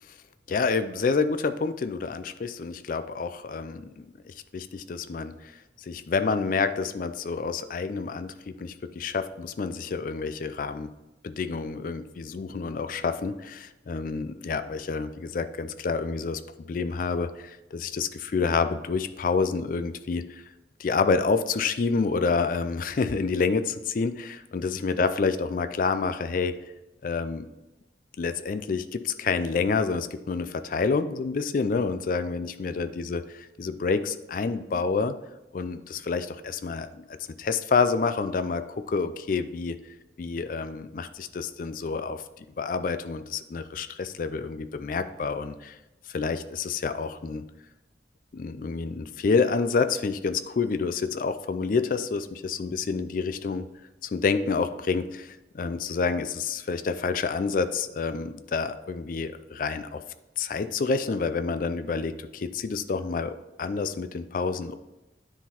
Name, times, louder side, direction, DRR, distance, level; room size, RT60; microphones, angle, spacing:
voice 1, 0.5-10.9 11.2-16.4 16.7-20.5 20.8-26.6 27.0-27.5 28.2-33.2 33.6-35.2 35.5-39.8 40.2-45.8 46.1-47.4 48.3-53.7 54.0-60.0 60.4-64.8, left 4 dB, 50° left, 10 dB, 0.4 m, -28 dB
9.8 x 3.9 x 4.3 m, 0.99 s
head